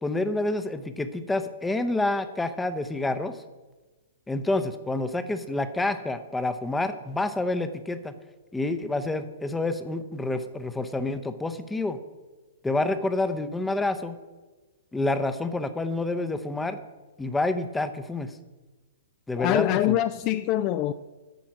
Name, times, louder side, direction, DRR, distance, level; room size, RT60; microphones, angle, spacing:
voice 1, 0.0-3.4 4.3-8.1 8.5-12.0 12.6-14.2 14.9-16.8 17.2-18.3 19.3-20.0, left 2 dB, 5° left, 0.7 m, -28 dB
voice 2, 19.4-20.9, left 13 dB, 35° left, 0.3 m, -24 dB
9.1 x 6.2 x 5.9 m
hypercardioid pair, 125°, 0 cm